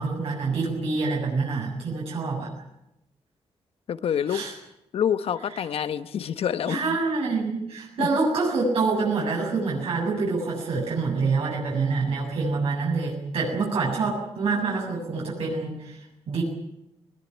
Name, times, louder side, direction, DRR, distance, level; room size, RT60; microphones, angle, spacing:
voice 1, 0.0-2.5 4.3-4.5 6.7-16.4, right 4 dB, 65° right, -4 dB, 7.5 m, -26 dB
voice 2, 3.9-4.4 4.9-7.0 8.0-8.1, left 8 dB, 65° left, 12 dB, 1.2 m, -27 dB
21.5 x 20.0 x 9.4 m, 0.83 s
wide cardioid pair, 140°, 11 cm